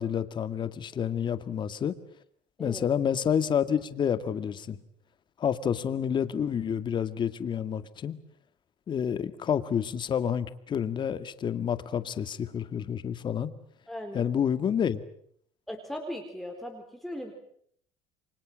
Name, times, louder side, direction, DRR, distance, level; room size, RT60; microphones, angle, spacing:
voice 1, 0.0-1.9 2.6-4.8 5.4-8.2 8.9-13.5 14.1-15.0, left 8 dB, 40° left, 12 dB, 2.1 m, -29 dB
voice 2, 13.9-14.3 15.7-17.3, equal, ahead, 3 dB, 4.1 m, -38 dB
29.5 x 24.5 x 7.6 m, 0.66 s
cardioid pair, 110°, 12 cm